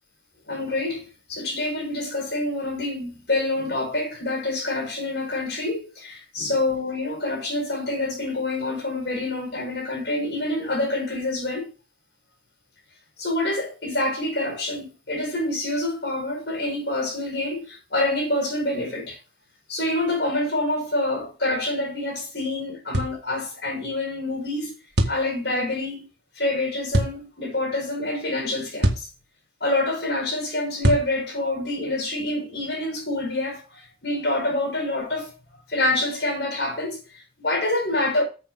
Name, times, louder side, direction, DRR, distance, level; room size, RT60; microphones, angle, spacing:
voice 1, 0.5-11.7 13.2-19.2 19.7-24.7 25.1-26.1 26.4-29.1 29.6-37.0 37.4-38.2, left 2 dB, 80° left, 5.3 m, -27 dB
sound 1, 22.9-23.2 25.0-25.2 26.9-27.2 28.8-29.1 30.8-31.1, right 1 dB, 80° right, 1.9 m, -22 dB
15.5 x 7.8 x 2.2 m
head